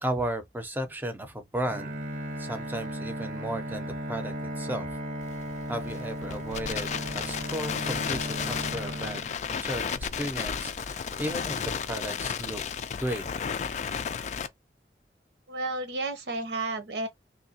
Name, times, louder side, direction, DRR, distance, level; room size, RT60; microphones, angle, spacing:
voice 1, 0.0-2.0 2.4-4.9 5.7-9.2 9.6-12.6 13.0-13.3, right 1 dB, 10° right, 0.6 m, -34 dB
Bowed string instrument, 1.6-9.9, equal, 50° right, 0.7 m, -36 dB
Crackle, 5.2-14.5, left 7 dB, 40° left, 0.3 m, -33 dB
voice 2, 15.5-17.1, right 2 dB, 80° right, 1.0 m, -32 dB
3.3 x 2.9 x 2.8 m
head